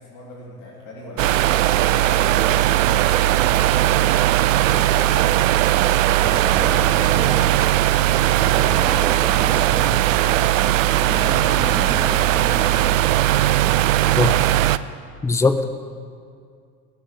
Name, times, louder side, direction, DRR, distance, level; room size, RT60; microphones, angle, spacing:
voice 1, 0.0-5.4 6.4-9.3 9.6-13.9, left 2 dB, 45° left, -3 dB, 2.8 m, -39 dB
sound 1, 1.2-14.8, right 13 dB, 65° right, 0.5 m, -18 dB
sound 2, 6.2-7.8 8.4-13.5, right 2 dB, 10° right, 1.3 m, -31 dB
voice 2, 15.2-15.7, left 4 dB, 5° left, 9 dB, 0.6 m, -19 dB
13.0 x 6.3 x 9.6 m, 2.2 s
figure-of-eight pair, 65°, 42 cm